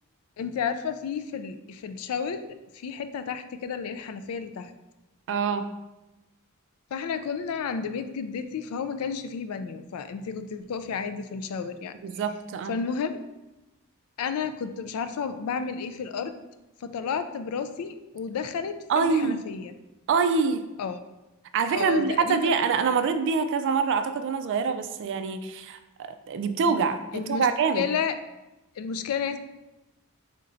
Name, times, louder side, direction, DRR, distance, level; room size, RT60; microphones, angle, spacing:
voice 1, 0.4-2.4 2.7-4.7 6.9-11.9 12.7-13.2 14.2-16.3 16.8-19.7 20.8-21.0 21.7-22.5 27.1-27.5 27.7-28.1 28.8-29.4, left 6 dB, 75° left, 10 dB, 0.3 m, -31 dB
voice 2, 5.3-5.7 12.0-12.7 18.9-19.4 20.1-20.7 21.5-27.9, right 5 dB, 55° right, 9 dB, 0.3 m, -25 dB
4.3 x 3.7 x 2.6 m, 1.0 s
head